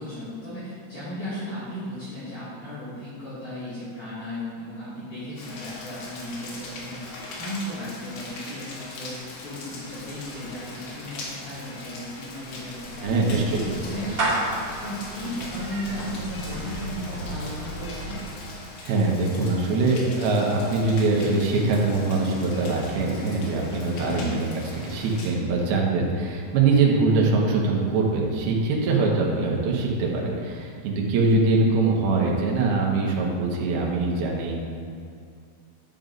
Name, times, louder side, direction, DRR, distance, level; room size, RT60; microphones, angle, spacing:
voice 1, 0.0-13.4 13.7-18.2 24.0-24.4, left 1 dB, 55° left, -13 dB, 3.4 m, -35 dB
Rain, 5.4-25.3, left 2 dB, 85° left, 3.4 m, -41 dB
Clapping / Meow, 12.4-18.7, right 2 dB, 35° right, 1.4 m, -33 dB
voice 2, 13.0-13.6 18.8-24.5 24.8-34.6, right 3 dB, 75° right, -2 dB, 3.0 m, -23 dB
10.5 x 9.4 x 2.6 m, 2.4 s
omnidirectional pair, 4.6 m